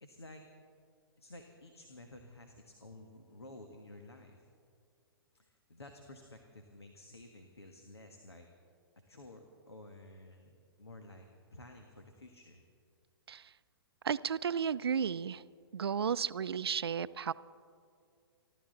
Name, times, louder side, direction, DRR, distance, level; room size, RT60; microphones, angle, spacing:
voice 1, 0.0-0.4 1.2-4.4 5.3-8.5 9.1-11.3 11.5-12.6, left 2 dB, 90° left, 4 dB, 1.5 m, -53 dB
voice 2, 14.0-15.4 15.7-17.3, right 7 dB, 75° right, 16 dB, 0.5 m, -33 dB
28.0 x 13.0 x 3.9 m, 2.2 s
figure-of-eight pair, 120°, 13 cm